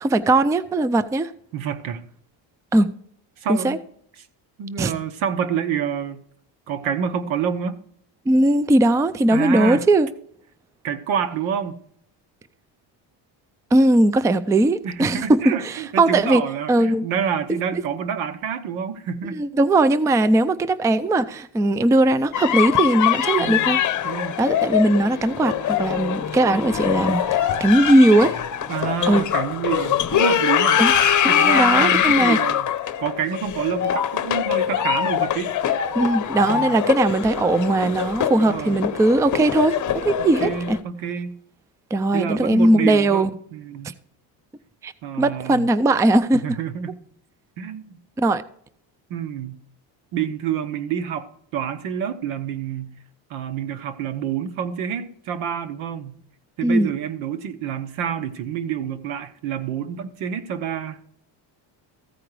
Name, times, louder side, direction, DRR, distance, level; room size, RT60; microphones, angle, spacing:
voice 1, 0.0-1.3 2.7-2.9 3.5-3.8 4.8-4.9 8.3-10.1 13.7-15.4 15.6-16.4 16.7-17.1 17.7-17.8 19.3-23.8 24.4-28.4 29.1-29.2 30.8-30.9 31.2-32.4 35.9-40.8 41.9-43.3 44.8-44.9 45.2-46.6 48.2-48.4 56.6-56.9, right 2 dB, 10° right, 0.3 m, -19 dB
voice 2, 1.5-2.0 3.4-3.8 4.6-6.2 6.7-7.8 9.3-9.8 10.8-11.8 14.8-19.4 23.4-24.4 28.7-30.8 31.3-32.7 33.0-35.6 36.5-36.8 38.4-38.8 40.2-41.3 42.1-43.9 45.0-45.7 46.4-47.0 47.6-48.0 49.1-49.6 50.1-53.0 53.3-56.2 56.6-61.0, right 8 dB, 85° right, 1.2 m, -28 dB
sound 1, 22.3-40.8, left 9 dB, 40° left, 0.8 m, -23 dB
14.5 x 4.9 x 4.7 m
cardioid pair, 105°, 47 cm